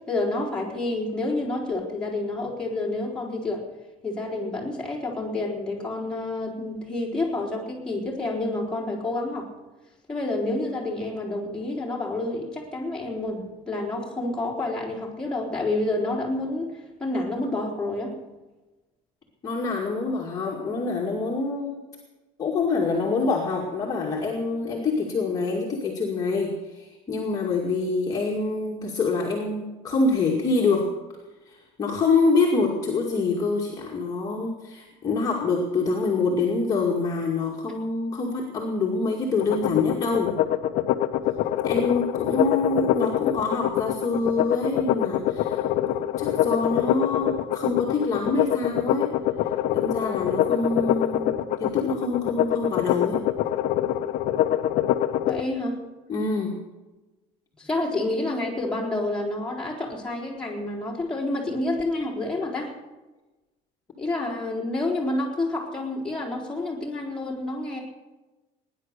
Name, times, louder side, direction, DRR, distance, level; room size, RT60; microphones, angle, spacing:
voice 1, 0.1-3.6 4.0-9.5 10.1-18.2 55.3-55.8 57.6-62.7 64.0-67.8, left 2 dB, 5° left, -4 dB, 4.0 m, -29 dB
voice 2, 19.4-21.8 22.4-30.9 31.5-40.3 41.6-45.7 46.2-49.1 49.7-51.3 51.6-53.2 56.1-56.5, left 3 dB, 25° left, -3 dB, 2.2 m, -26 dB
sound 1, 39.4-55.4, left 12 dB, 60° left, 0.9 m, -24 dB
19.0 x 10.5 x 6.7 m, 1.1 s
cardioid pair, 155°, 14 cm